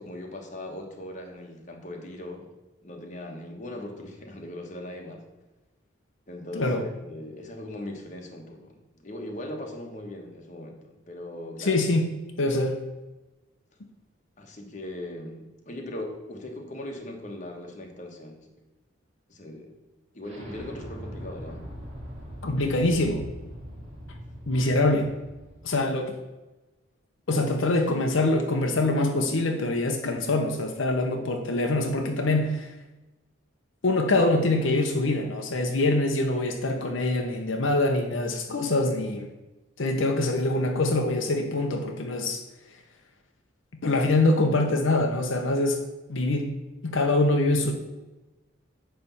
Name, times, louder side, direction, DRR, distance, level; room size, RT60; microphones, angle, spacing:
voice 1, 0.0-2.5 2.8-5.2 6.3-11.8 14.4-18.5 19.3-19.7 20.1-21.7, left 1 dB, 35° left, 2 dB, 1.2 m, -39 dB
voice 2, 6.5-6.8 11.6-12.1 12.4-12.8 22.4-23.2 24.5-25.1 25.6-26.2 27.3-32.7 33.8-39.3 39.8-42.4 43.8-45.8 46.1-46.6 46.8-47.7, left 2 dB, 75° left, 3 dB, 0.8 m, -24 dB
Explosion, 20.2-25.7, equal, 35° right, 1.9 m, -41 dB
9.6 x 3.4 x 7.0 m, 1.1 s
head